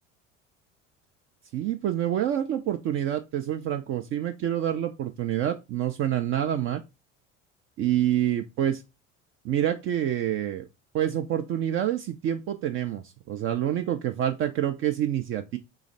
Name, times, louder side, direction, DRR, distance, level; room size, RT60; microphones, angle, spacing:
voice 1, 1.5-6.8 7.8-8.8 9.4-10.7 10.9-15.6, right 11 dB, 35° right, 0.4 m, -27 dB
3.2 x 3.1 x 3.9 m
figure-of-eight pair, 65°, 38 cm